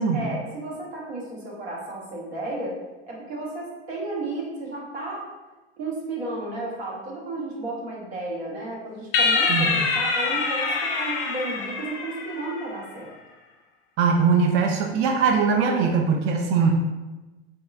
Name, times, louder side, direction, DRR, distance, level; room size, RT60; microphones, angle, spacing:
voice 1, 0.1-2.8 3.1-5.2 5.8-13.1 16.6-16.7, right 2 dB, 80° right, -3 dB, 1.1 m, -33 dB
Ring Modulation (John Carpenter style), 9.1-12.7, left 4 dB, 40° left, 0.6 m, -25 dB
voice 2, 14.0-16.7, right 5 dB, 40° right, 2 dB, 0.4 m, -21 dB
3.6 x 2.9 x 2.4 m, 1.1 s
hypercardioid pair, 95°, 32 cm